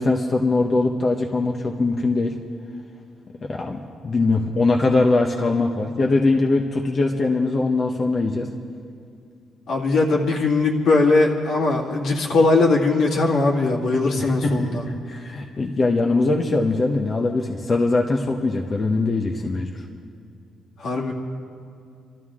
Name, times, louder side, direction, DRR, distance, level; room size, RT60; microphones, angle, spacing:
voice 1, 0.0-2.4 3.4-8.5 14.2-19.7, left 3 dB, 40° left, 1 dB, 1.0 m, -21 dB
voice 2, 9.7-14.8 20.8-21.1, left 3 dB, 70° left, -2 dB, 2.3 m, -20 dB
25.0 x 13.0 x 3.7 m, 2.4 s
cardioid pair, 90°, 0 cm